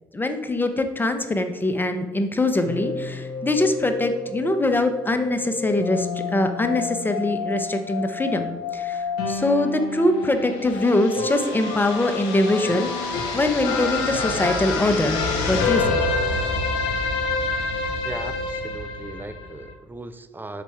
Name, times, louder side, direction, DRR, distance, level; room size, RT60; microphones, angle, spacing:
voice 1, 0.1-15.2 15.5-16.0, left 2 dB, 20° left, 7 dB, 0.8 m, -23 dB
sound 1, 2.6-19.7, left 4 dB, 80° left, 0.8 m, -28 dB
voice 2, 18.0-20.6, right 2 dB, 20° right, 10 dB, 0.6 m, -37 dB
6.0 x 4.6 x 4.4 m, 1.2 s
hypercardioid pair, 50°, 11 cm